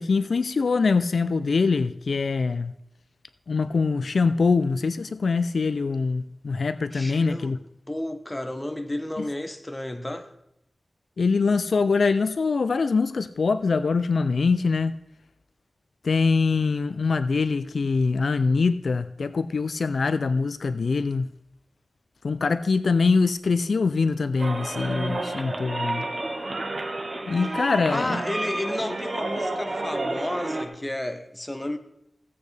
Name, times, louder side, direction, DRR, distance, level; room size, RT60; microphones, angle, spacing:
voice 1, 0.0-2.7 3.5-7.6 9.2-9.3 11.2-15.0 16.0-21.3 22.2-26.1 27.3-28.2, left 4 dB, 75° left, 0.4 m, -23 dB
voice 2, 6.9-7.5 7.9-10.3 27.9-31.8, left 1 dB, 15° left, 1.0 m, -32 dB
sound 1, 24.4-30.7, right 2 dB, 45° right, 1.4 m, -30 dB
15.5 x 8.4 x 3.3 m
wide cardioid pair, 85°, 0 cm